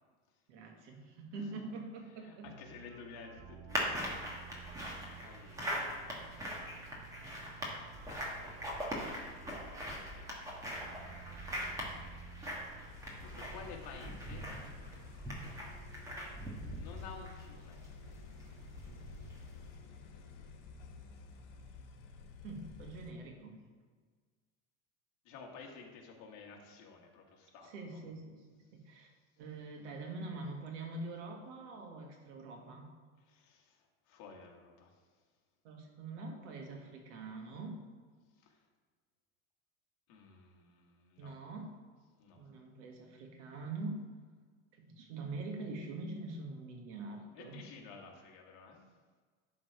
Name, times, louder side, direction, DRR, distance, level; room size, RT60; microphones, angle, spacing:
voice 1, 0.5-2.5 22.4-23.6 27.6-29.1 29.4-32.9 35.6-37.9 41.2-41.8 42.4-44.1 44.7-47.6, right 3 dB, 75° right, 2 dB, 1.8 m, -44 dB
voice 2, 2.1-4.0 5.2-6.4 7.6-7.7 8.0-12.1 13.2-14.5 16.7-17.9 25.2-28.0 33.2-35.1 38.3-38.7 40.1-41.4 42.2-42.4 47.3-48.9, left 5 dB, 50° left, 0 dB, 1.6 m, -53 dB
sound 1, 2.4-12.9, right 7 dB, 30° right, 0.5 m, -54 dB
sound 2, 3.7-19.7, equal, 10° right, 1.3 m, -42 dB
sound 3, 12.9-23.1, left 4 dB, 80° left, 1.3 m, -52 dB
11.5 x 3.8 x 4.6 m, 1.5 s
cardioid pair, 165°, 36 cm